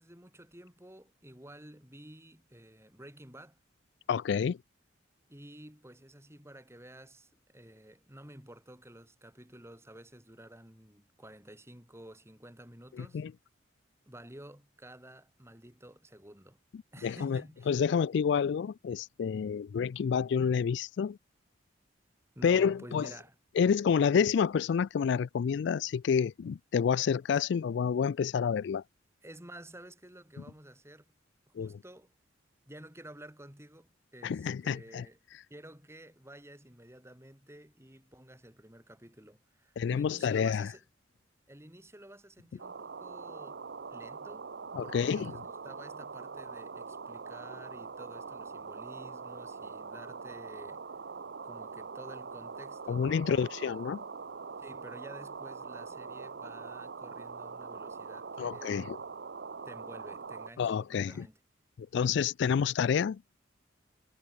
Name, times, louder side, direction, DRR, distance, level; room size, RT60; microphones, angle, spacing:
voice 1, 0.0-3.6 5.3-13.2 14.1-16.6 16.9-17.8 22.3-23.4 29.2-31.1 31.5-32.1 32.7-35.2 35.5-40.8 41.5-43.6 43.9-44.5 44.8-50.9 51.4-53.1 54.6-58.9 59.6-61.4, right 1 dB, 15° right, 6.0 m, -51 dB
voice 2, 4.1-4.6 13.0-13.3 17.0-17.4 17.7-21.2 22.4-23.1 23.6-28.8 31.6-31.7 34.2-35.0 39.8-40.7 44.7-45.3 52.9-54.0 58.4-59.0 60.6-61.2 61.8-63.2, left 7 dB, 65° left, 0.3 m, -29 dB
sound 1, 42.6-60.5, right 5 dB, 60° right, 0.8 m, -43 dB
head